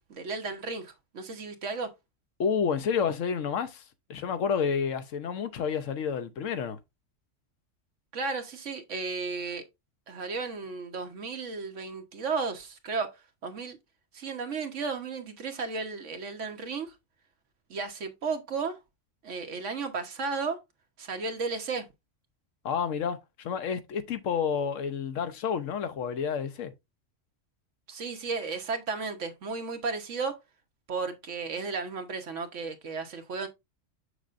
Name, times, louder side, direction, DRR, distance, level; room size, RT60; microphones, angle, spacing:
voice 1, 0.0-1.9 8.1-9.6 10.1-13.8 14.1-16.9 17.7-18.8 19.2-20.6 21.0-21.9 27.9-30.4 30.9-33.5, right 4 dB, 75° right, 1.4 m, -34 dB
voice 2, 2.4-3.8 4.1-6.8 22.6-26.7, left 6 dB, 80° left, 1.1 m, -30 dB
6.6 x 6.5 x 2.5 m
omnidirectional pair, 1.3 m